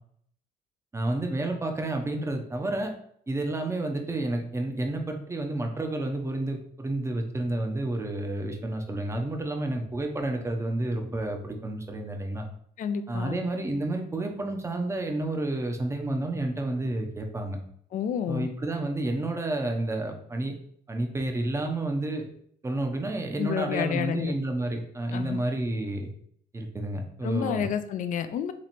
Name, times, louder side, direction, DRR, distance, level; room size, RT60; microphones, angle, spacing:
voice 1, 0.9-2.9 3.3-12.5 13.1-17.6 18.3-20.5 20.9-22.2 22.6-26.1 26.5-27.7, right 2 dB, 15° right, 3 dB, 0.7 m, -30 dB
voice 2, 12.8-13.4 17.9-18.5 23.4-24.3 25.1-25.4 27.2-28.5, left 8 dB, 50° left, 10 dB, 0.5 m, -29 dB
3.1 x 3.1 x 4.2 m, 0.66 s
cardioid pair, 110°, 17 cm